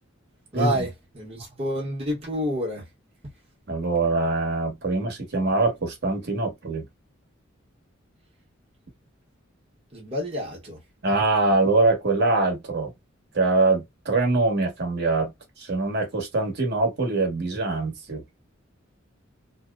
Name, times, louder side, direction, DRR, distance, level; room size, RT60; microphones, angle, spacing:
voice 1, 0.5-2.8 9.9-10.8, equal, 30° right, 0.9 m, -29 dB
voice 2, 3.7-6.8 11.0-12.9 13.3-18.2, right 3 dB, 55° right, 1.0 m, -23 dB
2.7 x 2.0 x 2.3 m
head